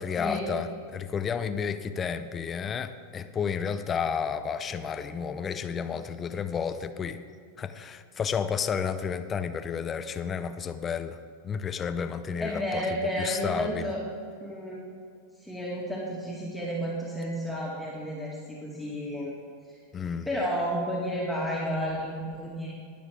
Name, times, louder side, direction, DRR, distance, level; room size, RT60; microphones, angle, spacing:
voice 1, 0.0-7.2 7.6-11.2 11.4-13.9 19.9-20.3, left 6 dB, 25° left, 10 dB, 0.6 m, -31 dB
voice 2, 12.4-14.0 14.4-14.8 15.4-19.3 20.2-22.7, equal, ahead, -6 dB, 2.1 m, -31 dB
20.5 x 6.9 x 3.7 m, 2.3 s
figure-of-eight pair, 90°, 0 cm